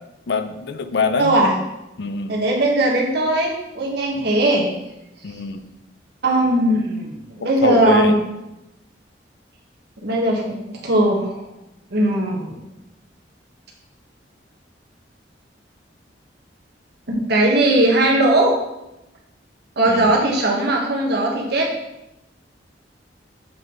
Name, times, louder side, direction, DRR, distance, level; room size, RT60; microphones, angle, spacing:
voice 1, 0.3-1.3 2.0-2.3 5.2-5.6 7.6-8.1 19.9-20.1, left 4 dB, 65° left, 8 dB, 0.5 m, -23 dB
voice 2, 1.2-1.5 2.3-4.7 6.2-8.1 10.0-11.4 11.9-12.6 17.1-18.6 19.8-21.7, right 1 dB, 65° right, -1 dB, 1.4 m, -19 dB
7.7 x 4.0 x 3.8 m, 0.92 s
head